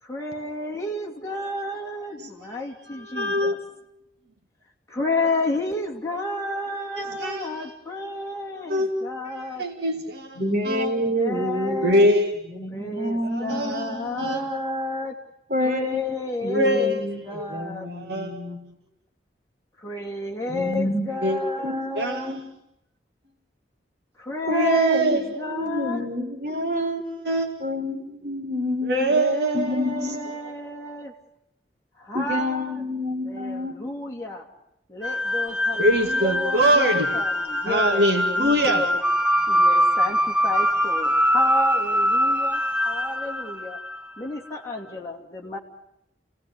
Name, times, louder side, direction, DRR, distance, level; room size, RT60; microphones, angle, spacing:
voice 1, 0.0-3.6 4.9-9.6 11.1-12.1 12.7-15.2 15.6-17.9 19.8-22.4 24.2-26.1 29.1-31.1 32.0-32.8 33.2-34.5 34.9-38.0 38.3-39.0 39.5-43.8 44.2-45.6, left 2 dB, 15° left, -1 dB, 2.9 m, -31 dB
voice 2, 2.9-3.6 7.0-7.7 8.6-8.9 9.6-10.4 10.7-10.9 11.8-12.4 13.2-14.4 16.5-17.0 17.3-17.5 17.9-18.4 21.2-22.4 24.5-25.3 26.7-26.8 27.2-27.5 28.8-29.8 35.8-37.1 37.7-38.8, right 1 dB, 70° right, 3 dB, 2.4 m, -23 dB
voice 3, 10.3-12.1 12.5-14.3 15.5-16.0 16.4-18.6 20.5-21.0 21.6-22.4 24.5-25.2 25.5-27.0 27.6-29.2 29.5-30.2 32.1-33.8, left 1 dB, 50° right, 2 dB, 3.8 m, -28 dB
sound 1, 35.0-44.2, equal, 5° right, 0.9 m, -23 dB
29.0 x 18.0 x 9.7 m, 0.85 s
head